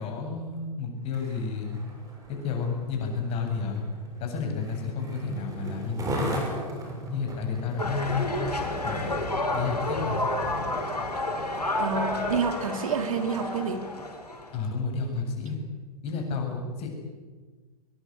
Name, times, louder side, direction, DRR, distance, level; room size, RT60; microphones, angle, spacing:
voice 1, 0.0-1.8 2.3-3.8 4.2-6.4 7.1-8.3 8.8-9.1 9.5-10.2 14.5-15.6 16.0-16.9, left 4 dB, 30° left, 2 dB, 7.6 m, -31 dB
Skateboard, 1.0-9.8 10.4-10.6, equal, 15° right, 6.8 m, -38 dB
sound 1, 7.8-14.6, left 2 dB, 75° left, 5.9 m, -30 dB
voice 2, 11.8-13.8, right 5 dB, 60° right, 8 dB, 2.6 m, -28 dB
25.0 x 23.0 x 8.2 m, 1.4 s
figure-of-eight pair, 105°, 20 cm